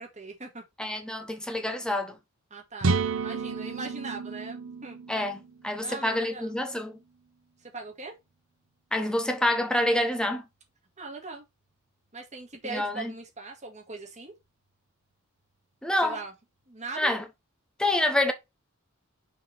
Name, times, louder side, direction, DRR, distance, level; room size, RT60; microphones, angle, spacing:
voice 1, 0.0-0.6 2.5-5.0 5.8-6.6 7.6-8.1 11.0-11.4 12.1-14.4 16.0-16.3 16.7-17.1, right 3 dB, 35° right, 2.2 m, -40 dB
voice 2, 0.8-2.2 5.1-7.0 8.9-10.4 12.7-13.1 15.8-16.2 17.0-17.2 17.8-18.3, left 1 dB, 5° left, 0.9 m, -27 dB
sound 1, 2.8-6.6, right 4 dB, 65° right, 0.8 m, -31 dB
6.5 x 3.9 x 4.5 m
head